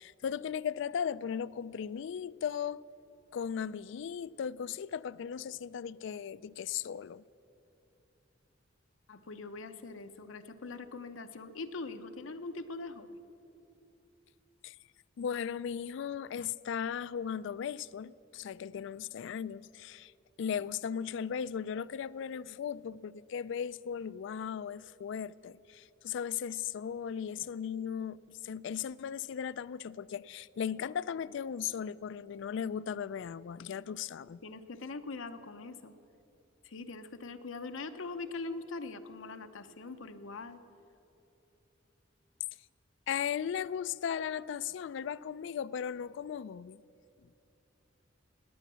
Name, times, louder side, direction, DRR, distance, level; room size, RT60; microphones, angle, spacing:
voice 1, 0.0-2.8 3.3-7.2 14.6-14.8 15.2-20.1 20.4-34.4 43.1-46.8, left 8 dB, 65° left, 0.3 m, -37 dB
voice 2, 9.1-13.2 33.9-34.0 34.4-35.9 36.6-40.6, left 3 dB, 85° left, 0.8 m, -42 dB
19.0 x 9.3 x 6.8 m
head